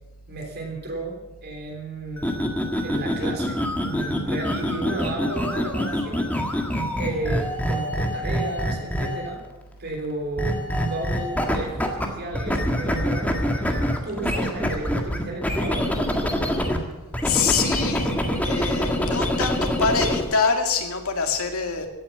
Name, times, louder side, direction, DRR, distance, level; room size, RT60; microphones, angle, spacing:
voice 1, 0.3-2.5 2.8-6.3 7.0-9.4 9.8-15.9, right 2 dB, 50° right, 1 dB, 3.4 m, -33 dB
sound 1, 2.2-9.4 10.4-12.1 12.3-16.8 17.1-20.2, equal, 5° left, 1.7 m, -25 dB
voice 2, 17.2-18.1 18.4-21.9, left 5 dB, 75° left, 4 dB, 2.2 m, -24 dB
16.0 x 8.7 x 8.0 m, 1.1 s
head